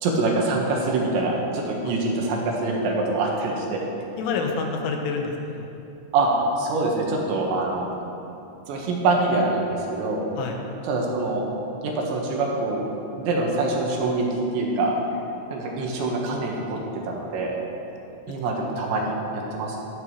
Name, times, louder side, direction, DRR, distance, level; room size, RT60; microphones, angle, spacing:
voice 1, 0.0-3.8 6.1-6.3 6.6-7.9 8.7-10.3 10.9-11.5 11.8-12.8 13.2-14.9 15.5-17.6 18.3-19.8, right 3 dB, 75° right, -1 dB, 3.4 m, -25 dB
voice 2, 4.2-5.7 10.4-10.6 17.9-18.0 18.5-18.7, left 4 dB, 80° left, 2 dB, 3.5 m, -28 dB
14.5 x 12.0 x 3.1 m, 2.8 s
omnidirectional pair, 5.7 m